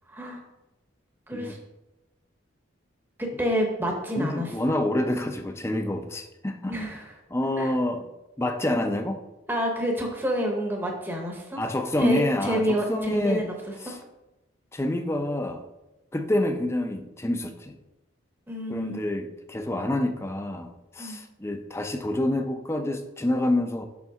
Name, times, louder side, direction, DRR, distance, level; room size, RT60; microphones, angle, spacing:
voice 1, 0.1-0.4 1.3-1.6 3.2-4.5 6.7-7.0 7.6-7.7 9.5-11.6 12.0-13.5 13.9-14.0 18.5-19.0 21.0-21.2, equal, 10° right, 1 dB, 0.8 m, -28 dB
voice 2, 4.2-6.7 7.3-8.1 8.4-9.2 11.6-13.5 13.8-14.0 14.7-15.6 16.1-17.8 18.7-23.9, left 1 dB, 15° left, 6 dB, 0.5 m, -27 dB
7.0 x 5.4 x 3.6 m, 0.98 s
head